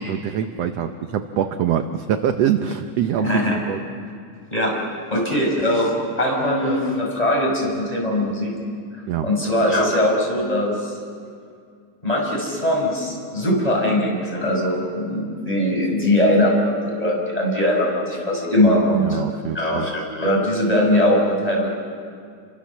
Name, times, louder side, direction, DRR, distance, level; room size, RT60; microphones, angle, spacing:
voice 1, 0.1-3.8 9.1-9.3 18.6-18.7 19.0-19.9, right 9 dB, 70° right, 8 dB, 1.6 m, -24 dB
voice 2, 3.2-3.6 4.5-4.8 5.1-8.6 9.2-10.9 12.0-19.2 19.5-21.7, left 1 dB, 10° left, -2 dB, 5.4 m, -21 dB
30.0 x 24.5 x 7.3 m, 2.2 s
omnidirectional pair, 3.8 m